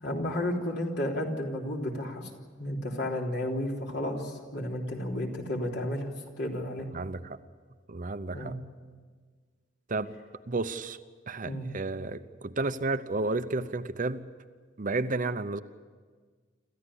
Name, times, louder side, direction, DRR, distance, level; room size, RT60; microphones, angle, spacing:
voice 1, 0.0-2.3 2.6-6.1 6.4-6.9 8.3-8.5 11.4-11.7, left 1 dB, 60° left, 3.6 m, -32 dB
voice 2, 6.9-7.4 7.9-8.6 9.9-10.2 10.5-11.0 11.3-14.3 14.8-15.6, right 3 dB, 45° right, 0.8 m, -32 dB
26.5 x 15.0 x 9.9 m
head